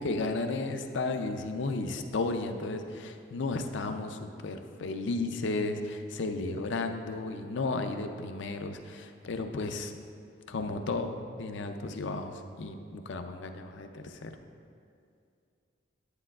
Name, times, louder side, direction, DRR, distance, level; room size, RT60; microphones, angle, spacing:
voice 1, 0.0-9.9 10.5-14.4, left 3 dB, 65° left, 6 dB, 0.5 m, -34 dB
9.8 x 9.0 x 2.3 m, 2.4 s
head